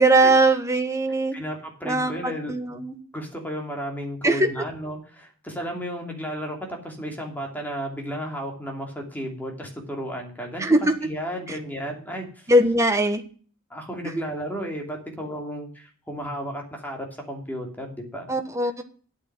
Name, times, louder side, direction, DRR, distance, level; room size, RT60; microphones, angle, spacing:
voice 1, 0.0-1.4 1.8-3.0 4.2-4.5 10.6-10.9 11.5-11.6 12.5-13.2 18.3-18.8, right 2 dB, 15° right, 6 dB, 1.2 m, -20 dB
voice 2, 1.3-2.8 3.1-6.6 6.8-12.5 13.7-18.4, equal, 10° left, 1 dB, 2.8 m, -33 dB
9.6 x 8.3 x 6.2 m, 0.42 s
head